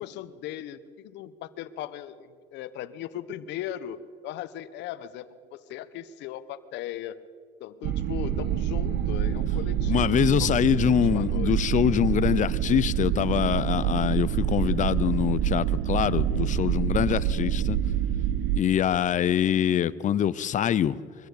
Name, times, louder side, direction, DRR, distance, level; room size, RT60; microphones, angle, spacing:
voice 1, 0.0-7.2 7.6-11.5, left 11 dB, 70° left, 1.2 m, -38 dB
sound 1, 7.8-18.6, right 10 dB, 60° right, 1.0 m, -26 dB
voice 2, 9.9-17.8 18.5-21.0, left 10 dB, 45° left, 0.8 m, -24 dB
23.0 x 14.5 x 8.6 m
supercardioid pair, 95°, 19 cm